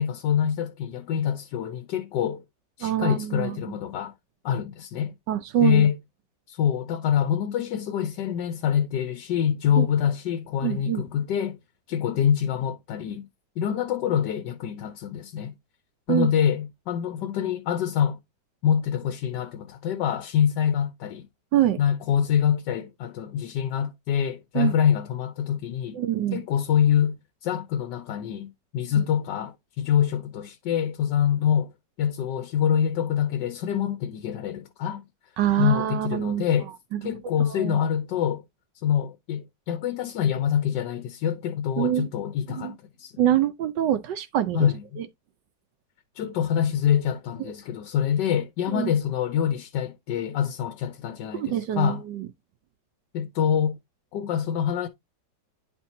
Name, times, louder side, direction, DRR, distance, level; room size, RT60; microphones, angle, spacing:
voice 1, 0.0-2.4 2.8-4.1 4.4-5.1 5.6-6.0 6.5-11.6 11.9-13.2 13.6-15.5 16.1-18.2 18.6-21.3 21.8-26.0 26.3-27.2 27.4-31.7 32.0-35.0 35.6-36.7 37.0-38.4 38.8-43.1 44.5-45.0 46.1-52.0 53.1-53.8 54.1-54.9, left 9 dB, 80° left, 1.4 m, -25 dB
voice 2, 2.8-3.6 5.3-5.9 9.8-9.9 10.6-11.0 16.1-16.3 21.5-21.8 24.5-24.7 25.9-26.4 29.0-29.1 35.4-36.4 37.0-37.1 37.5-37.9 41.8-42.1 42.5-42.7 43.2-44.7 45.0-45.1 47.4-47.5 48.7-48.9 51.3-52.3, right 11 dB, 80° right, 1.4 m, -25 dB
10.0 x 4.5 x 2.7 m
omnidirectional pair, 1.9 m